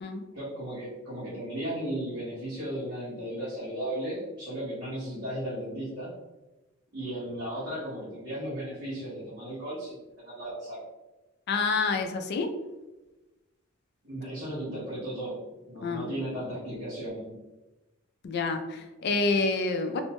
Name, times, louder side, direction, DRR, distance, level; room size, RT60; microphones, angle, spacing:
voice 1, 0.3-6.1 6.9-10.8 14.0-15.4 15.6-17.3, right 1 dB, 55° right, -11 dB, 1.0 m, -35 dB
voice 2, 11.5-12.6 15.8-16.1 18.2-20.0, left 3 dB, 50° left, 6 dB, 0.3 m, -28 dB
2.6 x 2.1 x 2.9 m, 1.1 s
head